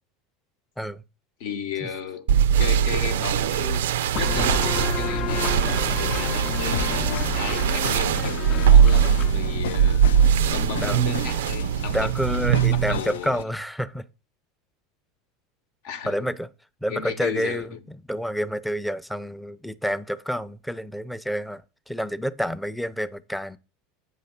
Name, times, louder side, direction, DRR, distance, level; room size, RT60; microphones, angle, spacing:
voice 1, 1.4-2.3 2.6-10.1 10.5-12.1 12.7-13.5 15.8-16.3 16.9-17.9, left 7 dB, 70° left, 1.0 m, -34 dB
sound 1, 2.3-13.0, right 8 dB, 80° right, 0.3 m, -21 dB
sound 2, 4.1-11.5, left 7 dB, 45° left, 0.6 m, -32 dB
sound 3, 5.1-13.4, left 8 dB, 85° left, 0.4 m, -37 dB
voice 2, 11.9-14.0 16.1-16.5 16.8-17.7 18.1-21.6 21.9-23.6, equal, 5° left, 0.5 m, -28 dB
8.0 x 5.6 x 5.3 m
hypercardioid pair, 90°, 0 cm